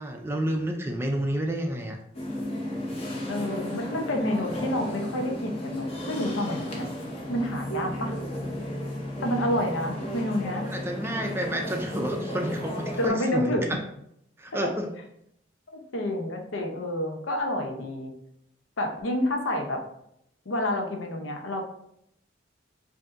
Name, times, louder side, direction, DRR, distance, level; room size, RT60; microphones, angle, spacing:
voice 1, 0.0-2.0 10.6-13.8 14.4-14.9, right 1 dB, 10° right, 2 dB, 0.4 m, -30 dB
sound 1, 2.1-13.1, equal, 30° left, 0.7 m, -34 dB
voice 2, 3.3-6.9 7.3-8.1 9.2-10.6 13.0-13.8 15.7-18.1 18.8-19.8 20.5-21.6, left 1 dB, 90° left, 3 dB, 0.7 m, -29 dB
5.0 x 2.6 x 2.5 m, 0.75 s
head